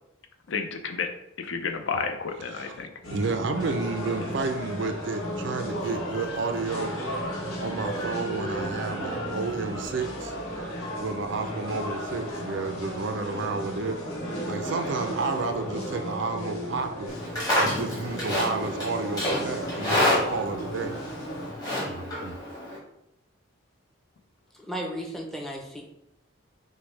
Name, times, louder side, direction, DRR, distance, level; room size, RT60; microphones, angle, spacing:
voice 1, 0.5-1.1 1.4-2.9, left 5 dB, 65° left, 5 dB, 0.5 m, -31 dB
voice 2, 2.5-6.9 7.2-7.3 7.6-10.3 11.0-14.0 14.5-17.2 17.6-21.0 21.9-22.3, right 3 dB, 55° right, 6 dB, 0.4 m, -31 dB
sound 1, 3.0-21.5, equal, 90° left, 1.0 m, -34 dB
Livestock farm animals working animals, 17.1-22.8, left 1 dB, 20° left, 1.0 m, -28 dB
voice 3, 24.6-25.8, equal, ahead, 0 dB, 0.5 m, -34 dB
6.0 x 2.2 x 3.2 m, 0.82 s
head